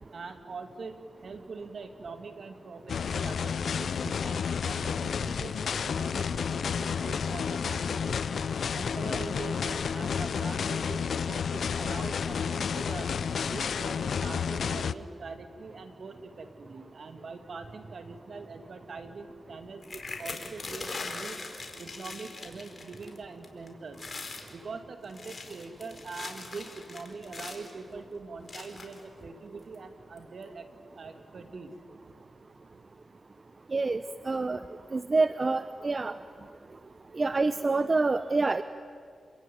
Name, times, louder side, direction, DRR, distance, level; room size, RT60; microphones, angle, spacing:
voice 1, 0.1-8.3 8.7-13.1 13.4-21.4 21.8-24.0 24.5-30.7 31.0-31.7, right 4 dB, 65° right, 7 dB, 2.6 m, -43 dB
sound 1, 2.9-14.9, left 6 dB, 75° left, 0.7 m, -31 dB
sound 2, 19.8-23.2 23.4-23.7 23.9-24.5 25.0-27.7 28.5-29.0 29.7-29.8 30.2-30.4, left 3 dB, 50° left, 4.5 m, -41 dB
voice 2, 33.7-34.6 34.9-36.1 37.1-38.6, right 3 dB, 40° right, 12 dB, 0.8 m, -27 dB
29.0 x 21.0 x 9.5 m, 2.3 s
cardioid pair, 55°, 0 cm